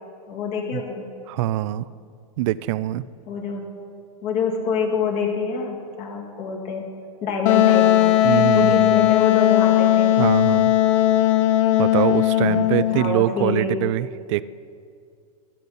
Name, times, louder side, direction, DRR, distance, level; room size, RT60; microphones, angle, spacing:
voice 1, 0.3-1.0 3.3-3.7 4.2-6.9 7.2-10.1 12.4-12.6 12.9-13.7, left 5 dB, 40° left, 0 dB, 2.3 m, -26 dB
voice 2, 1.3-1.8 2.4-3.0 8.2-9.0 10.2-10.7 11.8-14.4, right 15 dB, 55° right, 17 dB, 0.4 m, -23 dB
Wind instrument woodwind instrument, 7.5-13.0, left 13 dB, 55° left, 0.6 m, -17 dB
13.5 x 13.0 x 4.1 m, 2.3 s
supercardioid pair, 140°, 19 cm